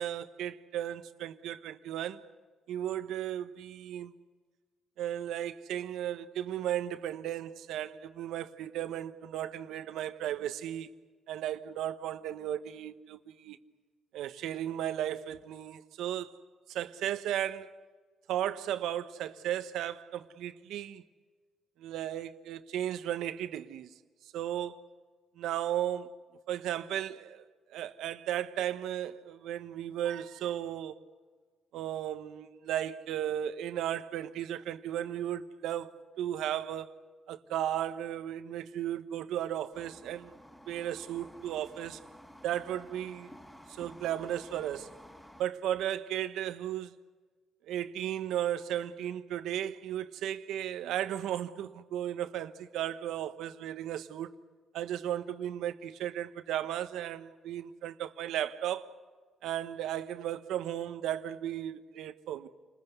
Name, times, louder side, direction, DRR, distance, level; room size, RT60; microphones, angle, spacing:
voice 1, 0.0-2.2 2.7-4.1 5.0-10.9 11.3-13.6 14.1-16.4 16.7-17.7 18.3-21.0 21.8-23.9 24.3-24.8 25.4-26.1 26.5-27.4 27.7-31.0 31.7-36.9 37.3-40.3 40.7-42.0 42.4-43.3 43.7-44.9 45.4-46.9 47.7-54.4 54.7-58.9 59.4-62.5, right 11 dB, 85° right, 1.1 m, -35 dB
sound 1, 39.7-45.4, equal, 10° left, 5.1 m, -53 dB
29.5 x 20.5 x 8.1 m
cardioid pair, 90°, 0 cm